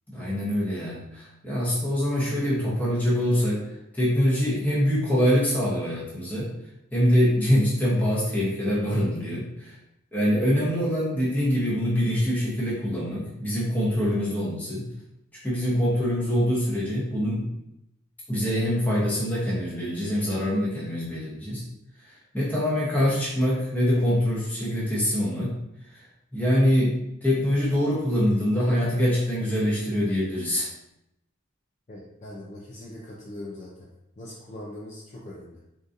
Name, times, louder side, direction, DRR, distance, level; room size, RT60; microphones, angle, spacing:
voice 1, 0.1-3.6 3.9-6.5 6.9-9.8 10.1-14.9 15.4-17.5 18.3-21.6 22.0-25.6 25.9-26.0 26.3-30.7, equal, 10° left, -7 dB, 0.9 m, -24 dB
voice 2, 31.9-33.9 34.2-35.6, left 1 dB, 35° left, -5 dB, 0.4 m, -41 dB
3.8 x 2.5 x 2.6 m, 0.84 s
head